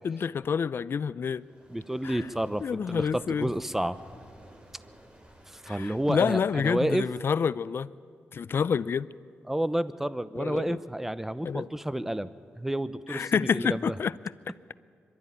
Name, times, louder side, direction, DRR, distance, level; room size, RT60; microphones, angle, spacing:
voice 1, 0.0-1.4 2.0-2.3 2.6-3.5 5.7-7.9 8.3-9.1 10.3-10.8 11.4-11.7 13.1-14.2, left 6 dB, 60° left, 0.5 m, -28 dB
sound 1, 1.3-7.1, equal, 25° right, 4.1 m, -53 dB
voice 2, 1.7-4.0 5.5-7.1 9.5-12.3 12.6-13.9, right 1 dB, 5° right, 0.8 m, -30 dB
23.0 x 12.5 x 10.0 m
cardioid pair, 65°, 4 cm